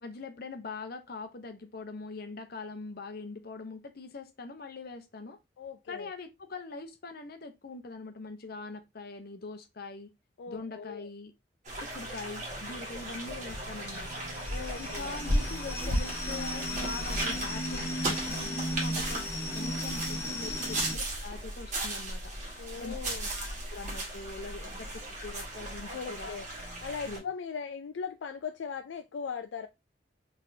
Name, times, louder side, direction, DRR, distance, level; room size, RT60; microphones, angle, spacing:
voice 1, 0.0-5.4 5.9-10.1 10.5-11.3 11.8-14.3 14.8-19.3 19.5-22.3 22.8-23.0 23.3-26.4 27.1-27.3, left 3 dB, 55° left, 0.8 m, -43 dB
voice 2, 5.6-6.1 10.4-11.1 14.5-15.2 22.6-23.3 25.9-26.5 26.8-29.7, left 6 dB, 80° left, 0.4 m, -39 dB
sound 1, 11.6-27.2, right 1 dB, 40° right, 1.8 m, -36 dB
sound 2, 12.5-20.9, left 1 dB, 15° left, 0.8 m, -37 dB
4.1 x 3.5 x 2.6 m
head